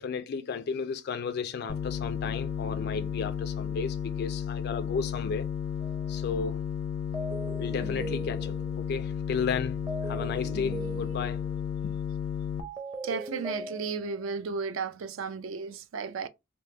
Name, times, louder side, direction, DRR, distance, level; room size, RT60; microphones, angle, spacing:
voice 1, 0.0-5.5 6.1-6.7 7.6-11.4 11.8-12.0, left 5 dB, 50° left, 0.3 m, -34 dB
sound 1, 1.7-12.6, left 8 dB, 85° left, 0.6 m, -33 dB
sound 2, 5.8-6.1 7.1-8.9 9.9-11.6 12.6-14.3, right 2 dB, 20° right, 0.6 m, -39 dB
voice 2, 13.0-16.3, right 5 dB, 70° right, 0.4 m, -34 dB
3.4 x 2.0 x 4.1 m
head